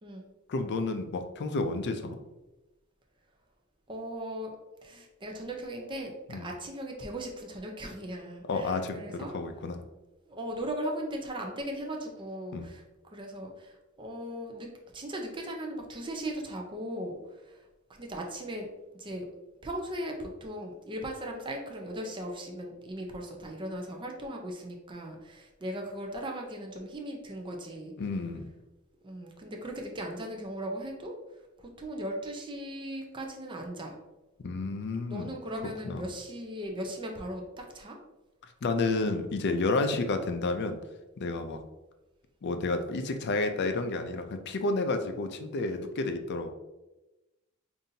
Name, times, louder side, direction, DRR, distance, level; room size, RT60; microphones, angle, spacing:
voice 1, 0.5-2.2 6.3-6.5 8.4-9.8 12.5-12.7 28.0-28.5 34.4-35.3 35.8-36.1 38.6-40.8 41.2-41.6 42.4-46.5, left 3 dB, 55° left, 7 dB, 0.4 m, -30 dB
voice 2, 3.9-4.5 4.8-9.3 10.3-17.2 17.4-17.7 18.0-18.7 19.0-19.3 19.6-27.9 29.0-31.1 31.6-34.0 35.1-38.0, right 1 dB, 25° right, 1 dB, 0.5 m, -38 dB
5.3 x 2.6 x 2.7 m, 1.0 s
head